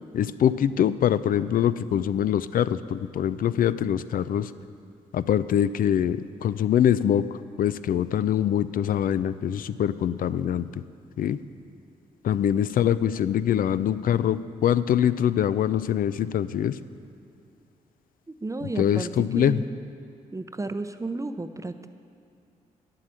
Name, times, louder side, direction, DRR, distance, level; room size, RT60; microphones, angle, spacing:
voice 1, 0.1-4.5 5.1-7.2 7.6-10.7 11.2-11.4 12.2-16.8 18.6-19.6, left 9 dB, 65° left, 14 dB, 0.4 m, -24 dB
voice 2, 18.3-19.6 20.3-21.9, right 2 dB, 20° right, 10 dB, 0.6 m, -33 dB
9.0 x 7.6 x 7.6 m, 2.6 s
supercardioid pair, 50°, 15 cm